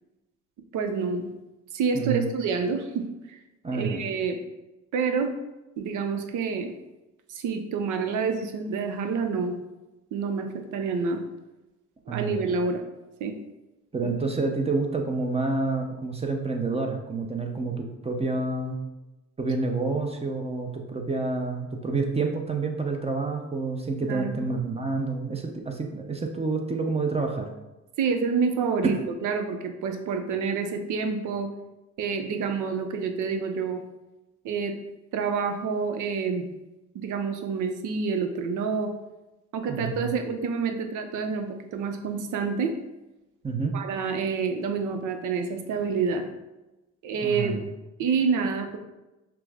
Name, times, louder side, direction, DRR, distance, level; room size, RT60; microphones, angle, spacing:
voice 1, 0.7-1.2 1.7-3.4 3.7-4.4 4.9-5.3 5.8-6.7 7.3-9.5 10.1-11.2 12.1-12.8 13.2-13.3 14.0-14.1 24.1-24.5 28.0-29.0 29.2-31.5 32.0-33.8 34.4-34.7 35.1-36.4 36.9-38.9 39.5-42.7 43.7-46.2 47.0-47.6 48.0-48.8, right 5 dB, 80° right, 6 dB, 0.6 m, -28 dB
voice 2, 1.9-2.3 3.6-4.0 12.1-12.4 13.9-18.8 19.4-27.5 39.7-40.1 43.4-43.8 47.2-47.7, right 3 dB, 20° right, 3 dB, 0.6 m, -28 dB
5.8 x 2.1 x 3.4 m, 1.0 s
cardioid pair, 90°, 30 cm